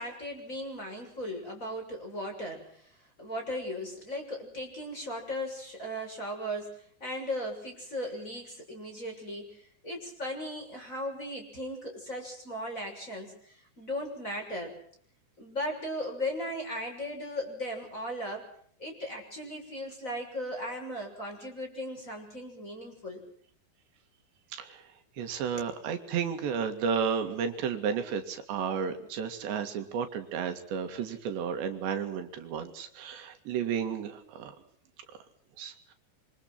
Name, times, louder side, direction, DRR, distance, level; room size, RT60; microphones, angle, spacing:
voice 1, 0.0-14.8 15.4-18.5 18.8-23.2 25.2-25.3, equal, 15° left, 2 dB, 6.9 m, -37 dB
voice 2, 25.2-34.6 35.6-35.9, right 7 dB, 80° right, 6 dB, 4.4 m, -32 dB
26.5 x 25.0 x 6.0 m, 0.62 s
omnidirectional pair, 5.0 m